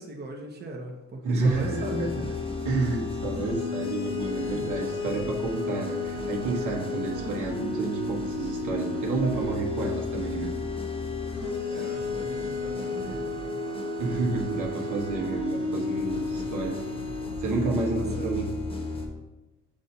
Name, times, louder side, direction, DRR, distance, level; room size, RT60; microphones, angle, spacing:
voice 1, 0.0-2.1 4.5-4.7 11.7-13.6 17.6-18.3, right 2 dB, 35° right, 1 dB, 1.0 m, -40 dB
voice 2, 1.2-2.3 2.6-10.5 14.0-16.8 17.4-18.5, right 3 dB, 80° right, -1 dB, 1.4 m, -30 dB
sound 1, 1.4-19.1, left 3 dB, 20° left, 1.2 m, -32 dB
7.4 x 2.7 x 5.5 m, 1.1 s
cardioid pair, 90°, 30 cm